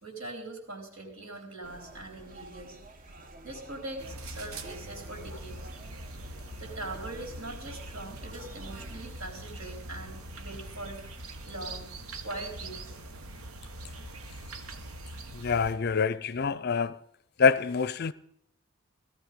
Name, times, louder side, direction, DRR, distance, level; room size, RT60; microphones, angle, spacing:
voice 1, 0.0-3.1 3.4-5.7 6.6-11.9 12.2-13.0, right 2 dB, 75° right, 4.0 m, -42 dB
sound 1, 1.6-9.3, right 1 dB, 40° right, 1.0 m, -49 dB
sound 2, 4.0-15.7, right 2 dB, 90° right, 1.4 m, -43 dB
voice 2, 15.3-17.0 17.4-18.1, left 5 dB, 50° left, 0.5 m, -26 dB
17.0 x 14.0 x 5.2 m
head